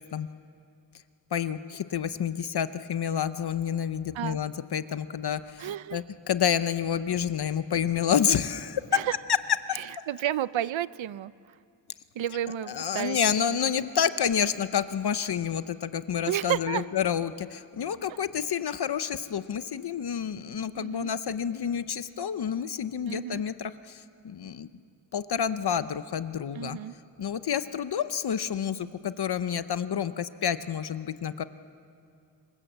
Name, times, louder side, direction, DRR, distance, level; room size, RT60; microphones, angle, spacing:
voice 1, 1.3-8.8 9.7-9.8 12.7-24.7 25.1-26.8 27.2-31.4, left 8 dB, 60° left, 12 dB, 0.7 m, -29 dB
voice 2, 5.6-6.0 8.9-9.1 9.7-11.3 12.1-13.5 16.3-16.9 20.8-21.1 23.1-23.4 26.5-26.9, right 12 dB, 80° right, 17 dB, 0.6 m, -31 dB
27.0 x 22.0 x 7.9 m, 2.4 s
wide cardioid pair, 155°, 45 cm